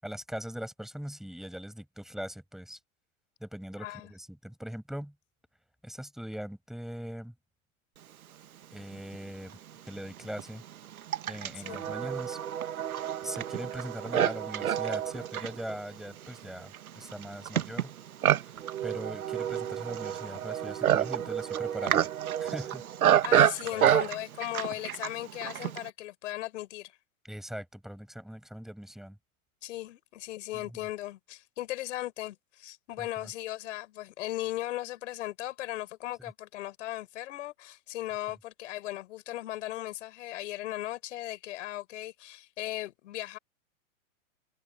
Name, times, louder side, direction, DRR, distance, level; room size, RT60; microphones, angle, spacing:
voice 1, 0.0-2.8 3.4-5.1 5.8-7.3 8.7-9.6 9.8-10.6 11.3-12.4 13.2-17.9 18.4-22.1 22.4-23.3 23.7-23.9 27.2-29.2 30.5-30.8 33.0-33.3 36.2-36.3 38.3-38.4, equal, ahead, 7.4 m, -41 dB
voice 2, 3.8-4.1 11.6-11.8 23.2-26.9 29.6-43.4, left 15 dB, 60° left, 5.5 m, -37 dB
Livestock farm animals working animals, 9.1-9.2 10.0-25.9, right 10 dB, 90° right, 1.2 m, -29 dB
hypercardioid pair, 130°, 42 cm